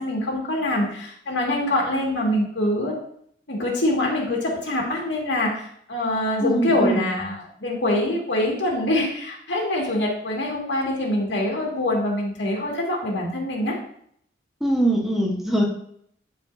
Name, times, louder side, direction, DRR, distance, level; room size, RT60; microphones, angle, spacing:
voice 1, 0.0-3.0 3.5-13.8, left 1 dB, 85° left, -1 dB, 1.9 m, -24 dB
voice 2, 6.4-7.1 14.6-15.6, right 1 dB, ahead, -1 dB, 1.1 m, -22 dB
11.5 x 4.4 x 2.6 m, 0.67 s
head